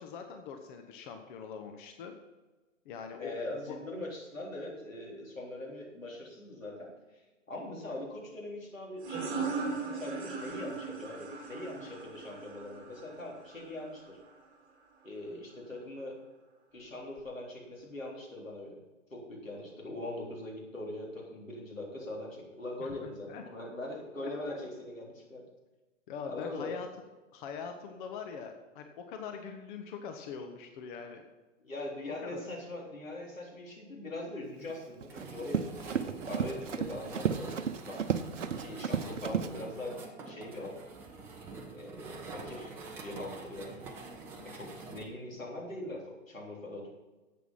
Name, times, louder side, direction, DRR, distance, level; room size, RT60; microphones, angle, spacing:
voice 1, 0.0-2.1 2.8-3.8 11.8-12.0 22.8-23.4 24.5-24.6 26.1-26.9 27.3-31.3 32.2-32.4 39.3-39.7 44.4-44.6, left 6 dB, 40° left, 5 dB, 1.2 m, -43 dB
voice 2, 3.2-6.9 7.5-14.2 15.0-16.2 16.7-18.8 19.1-25.5 26.3-26.7 31.6-37.5 37.8-38.1 38.4-40.0 40.3-40.8 41.7-42.7 43.0-43.8 44.4-46.9, left 1 dB, 85° left, -2 dB, 3.6 m, -41 dB
sound 1, 9.0-14.4, right 4 dB, 20° right, 2.9 m, -39 dB
Run, 34.7-39.5, right 7 dB, 65° right, 0.8 m, -33 dB
sound 2, 35.1-45.0, right 3 dB, 5° right, 0.4 m, -46 dB
11.0 x 8.4 x 5.6 m, 1.2 s
figure-of-eight pair, 115°, 39 cm